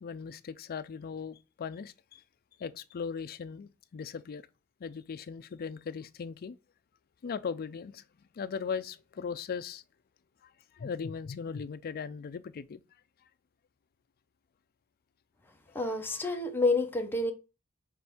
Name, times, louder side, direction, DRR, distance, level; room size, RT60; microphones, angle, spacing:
voice 1, 0.0-2.2 2.6-4.4 4.8-6.6 7.2-8.0 8.3-9.8 10.4-12.8 15.7-15.8, left 6 dB, 45° left, 0.4 m, -38 dB
voice 2, 15.7-17.3, left 2 dB, 10° left, 0.7 m, -28 dB
6.0 x 2.5 x 3.4 m
head